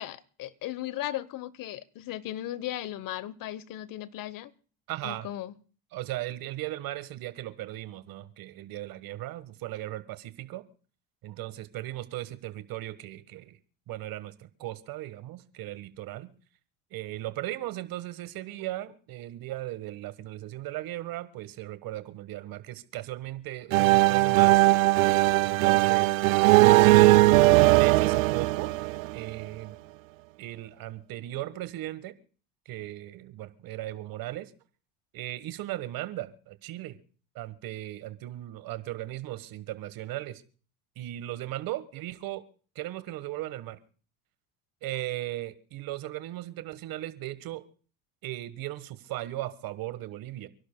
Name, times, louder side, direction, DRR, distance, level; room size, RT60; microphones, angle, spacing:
voice 1, 0.0-4.5 5.0-5.5, left 13 dB, 55° left, 1.0 m, -36 dB
voice 2, 4.9-5.3 5.9-10.6 11.2-13.6 13.9-16.3 16.9-24.7 25.4-26.2 26.8-28.7 29.1-29.8 30.4-32.1 32.6-34.5 35.1-37.0 37.3-40.4 41.0-42.4 42.7-43.8 44.8-47.6 48.2-50.5, right 15 dB, 60° right, 1.5 m, -37 dB
sound 1, 23.7-29.5, right 19 dB, 90° right, 0.5 m, -19 dB
29.0 x 11.5 x 2.3 m
supercardioid pair, 80°, 39 cm